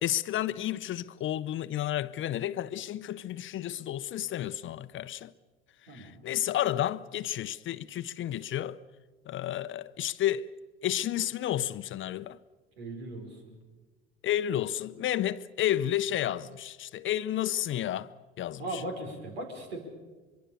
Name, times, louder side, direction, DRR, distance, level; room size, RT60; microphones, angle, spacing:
voice 1, 0.0-5.3 5.9-8.8 9.3-10.5 10.8-12.4 14.2-18.1 18.4-18.6, left 12 dB, 40° left, 0.8 m, -31 dB
voice 2, 5.9-6.2 12.8-13.6 18.6-19.8, right 1 dB, 80° right, 5.0 m, -38 dB
24.5 x 23.5 x 7.0 m
hypercardioid pair, 70°, 31 cm